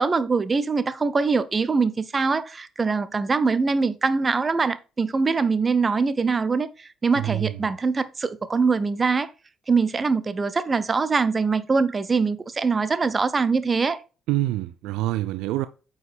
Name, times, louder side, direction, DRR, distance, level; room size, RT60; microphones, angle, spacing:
voice 1, 0.0-6.7 7.0-9.3 9.7-14.0, right 4 dB, 30° right, 0.8 m, -23 dB
voice 2, 7.2-7.7 14.3-15.7, right 15 dB, 65° right, 0.4 m, -26 dB
9.0 x 4.9 x 3.4 m
figure-of-eight pair, 45°, 0 cm